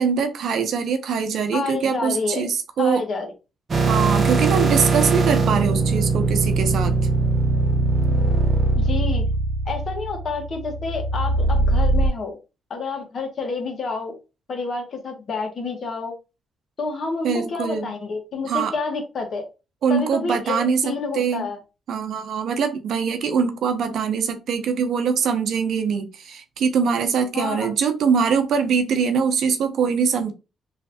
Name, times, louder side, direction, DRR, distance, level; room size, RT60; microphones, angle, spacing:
voice 1, 0.0-3.0 3.9-6.9 17.2-17.9 18.5-18.7 19.8-21.5 21.9-30.3, right 6 dB, 70° right, 0.6 m, -23 dB
voice 2, 1.5-2.4 2.8-3.3 8.7-9.2 9.7-12.4 12.7-14.1 14.5-16.1 16.8-19.4 19.9-21.6 27.3-27.7, left 4 dB, 50° left, 1.2 m, -29 dB
sound 1, 3.7-12.1, right 3 dB, 40° right, 0.9 m, -21 dB
3.2 x 3.1 x 2.7 m
cardioid pair, 90°, 0 cm